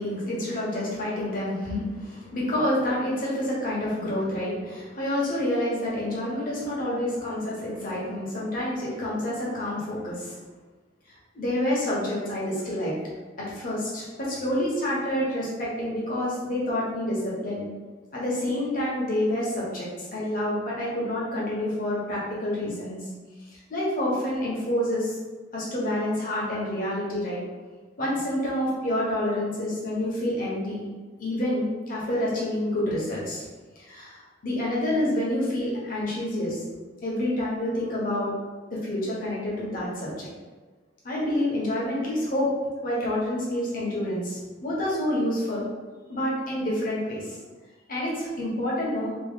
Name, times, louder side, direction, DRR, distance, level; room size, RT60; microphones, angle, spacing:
voice 1, 0.0-10.4 11.3-12.9 13.4-17.6 18.1-23.0 23.5-25.1 25.5-27.4 28.0-30.9 31.2-33.4 33.8-36.6 37.0-38.3 38.8-40.3 41.0-42.5 42.8-45.6 46.1-47.4 47.9-49.2, left 1 dB, 50° left, -6 dB, 1.2 m, -28 dB
3.0 x 2.9 x 3.7 m, 1.3 s
head